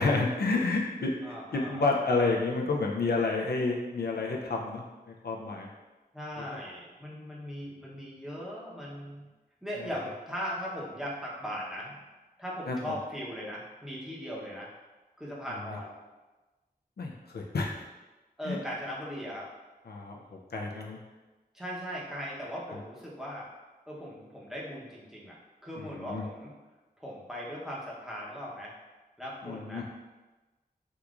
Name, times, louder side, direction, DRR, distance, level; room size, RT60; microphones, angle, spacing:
voice 1, 0.0-5.7 9.8-9.9 12.7-12.9 17.0-17.7 18.4-18.6 19.9-21.0 22.7-22.8 25.8-26.2 29.4-29.8, left 3 dB, 75° left, -1 dB, 0.4 m, -30 dB
voice 2, 1.2-1.9 6.1-9.3 9.6-12.0 12.4-14.7 15.2-15.9 18.4-19.5 21.5-23.5 23.9-25.4 25.6-26.5 27.0-28.7 29.2-30.0, equal, 5° right, -5 dB, 0.8 m, -39 dB
3.6 x 2.9 x 2.4 m, 1.2 s
wide cardioid pair, 60°, 17 cm